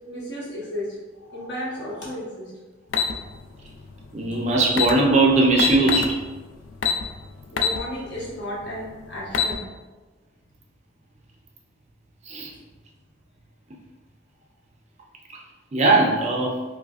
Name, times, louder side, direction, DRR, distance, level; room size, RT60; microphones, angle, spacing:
voice 1, 0.1-1.0 1.3-2.5 7.5-9.6, equal, 60° left, -7 dB, 1.2 m, -33 dB
sound 1, 2.9-3.1 4.3-4.4 4.7-4.9 5.6-6.1 6.8-7.0 7.6-7.8 8.2-8.3 9.1-9.5, left 7 dB, 75° left, 0.4 m, -22 dB
voice 2, 4.1-6.2 12.3-12.5 15.7-16.6, right 2 dB, 35° right, 0 dB, 0.4 m, -19 dB
4.7 x 2.0 x 2.4 m, 1.2 s
head